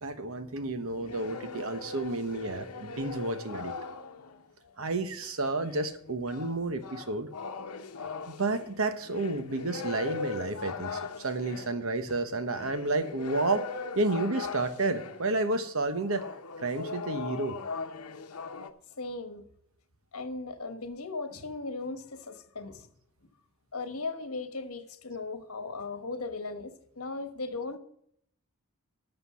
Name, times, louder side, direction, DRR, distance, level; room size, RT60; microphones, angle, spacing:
voice 1, 0.0-3.7 4.8-7.3 8.3-13.7 13.9-16.3 16.6-17.6, right 2 dB, 65° right, 1.1 m, -31 dB
sound 1, 0.9-4.4 5.4-15.3 16.0-18.7, left 4 dB, 90° left, 0.9 m, -40 dB
voice 2, 19.0-19.4 20.1-22.9 23.7-27.8, left 3 dB, 75° left, 1.2 m, -37 dB
11.5 x 6.8 x 5.6 m
head